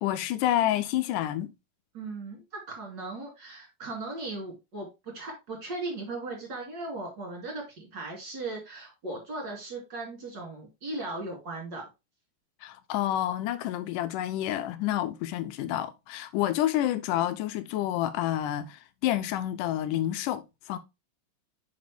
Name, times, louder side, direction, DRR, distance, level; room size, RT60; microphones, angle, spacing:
voice 1, 0.0-1.5 12.6-20.8, left 12 dB, 75° left, 2.1 m, -29 dB
voice 2, 1.9-11.8, right 2 dB, 35° right, 2.8 m, -37 dB
6.4 x 5.2 x 3.4 m
omnidirectional pair, 4.1 m